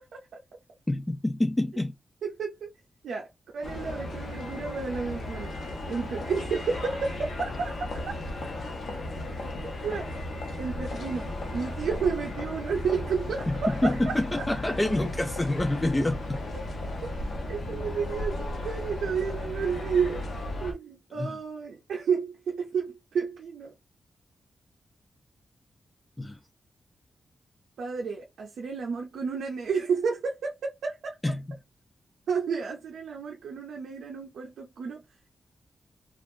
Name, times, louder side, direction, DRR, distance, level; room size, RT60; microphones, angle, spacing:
voice 1, 0.9-2.0 13.5-16.4 21.2-21.4 26.2-26.4 31.2-31.4, left 1 dB, 15° left, 0.4 m, -27 dB
voice 2, 2.2-2.7 3.0-3.3 3.5-5.6 5.9-7.8 9.8-10.1 10.6-14.1 16.5-16.6 17.0-17.2 17.5-20.2 20.6-23.7 27.8-31.3 32.3-35.0, right 5 dB, 90° right, 0.5 m, -31 dB
sound 1, 3.6-20.7, left 1 dB, 70° left, 0.9 m, -35 dB
3.5 x 2.4 x 2.6 m
cardioid pair, 80°, 0 cm